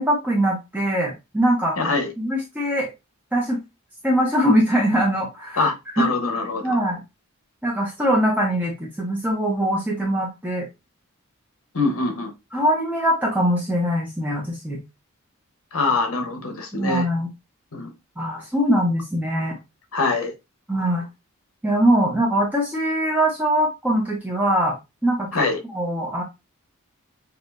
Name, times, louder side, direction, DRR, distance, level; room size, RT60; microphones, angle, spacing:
voice 1, 0.0-2.9 3.3-3.6 4.0-6.1 6.6-7.0 7.6-10.7 12.5-14.8 16.7-17.3 18.2-19.6 20.7-21.0 21.6-24.7 25.0-25.4 25.7-26.2, equal, 10° right, 0.9 m, -22 dB
voice 2, 1.8-2.1 5.6-6.8 11.7-12.3 15.7-17.1 17.7-17.9 19.9-20.3 25.3-25.6, left 3 dB, 70° left, 1.1 m, -24 dB
6.3 x 2.5 x 2.6 m
head